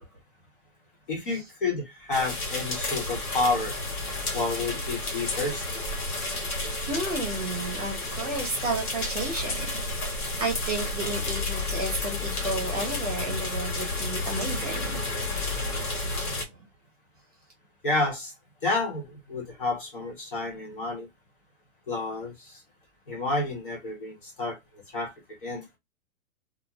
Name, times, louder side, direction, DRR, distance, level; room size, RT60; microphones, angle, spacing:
voice 1, 1.1-3.8 4.3-5.6 16.2-16.4 17.8-18.3 18.6-21.1 21.9-22.6 23.1-25.1 25.4-25.7, left 3 dB, 35° left, 1.0 m, -30 dB
sound 1, 2.1-16.4, left 2 dB, 75° left, 1.4 m, -31 dB
voice 2, 6.5-9.8 10.1-15.0, right 2 dB, 25° right, 0.8 m, -32 dB
2.5 x 2.1 x 2.8 m
hypercardioid pair, 180°, 44 cm